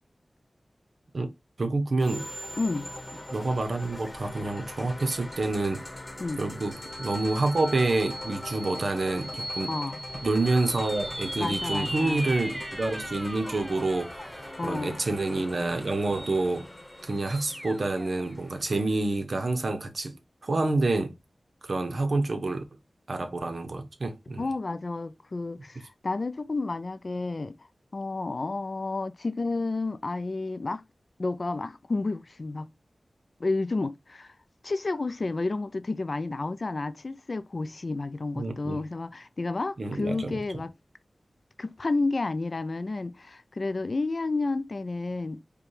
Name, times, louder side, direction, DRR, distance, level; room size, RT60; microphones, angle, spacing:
voice 1, 1.6-2.3 3.3-5.8 6.4-9.7 10.2-16.7 17.0-20.2 20.4-21.1 21.6-22.6 23.1-24.5 38.4-38.8 39.8-40.4, right 2 dB, 70° right, 0.8 m, -28 dB
sound 1, 2.0-19.2, left 1 dB, 30° left, 1.0 m, -43 dB
sound 2, 2.1-4.0 4.5-4.6 6.6-18.3, equal, 10° right, 0.4 m, -39 dB
voice 2, 2.6-2.9 6.2-6.4 9.7-10.0 11.4-12.3 14.6-15.0 24.4-27.6 27.9-30.8 31.2-32.7 33.4-34.3 34.6-40.7 41.6-45.4, left 3 dB, 60° left, 0.4 m, -31 dB
5.0 x 2.2 x 3.1 m
wide cardioid pair, 55°, 0 cm